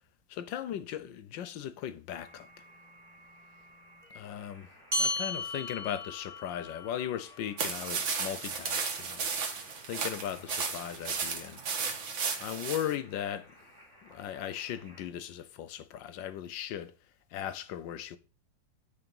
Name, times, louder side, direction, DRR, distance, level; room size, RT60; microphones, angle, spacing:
voice 1, 0.3-2.5 4.1-4.7 5.0-9.4 9.9-11.6 12.4-13.6 14.0-17.0 17.3-18.2, left 10 dB, 75° left, 1.4 m, -38 dB
sound 1, 2.1-15.1, left 2 dB, ahead, 5.7 m, -55 dB
sound 2, 4.9-9.7, left 1 dB, 25° right, 2.6 m, -37 dB
sound 3, 7.6-12.9, right 5 dB, 90° right, 2.2 m, -34 dB
9.5 x 4.9 x 5.4 m
omnidirectional pair, 2.1 m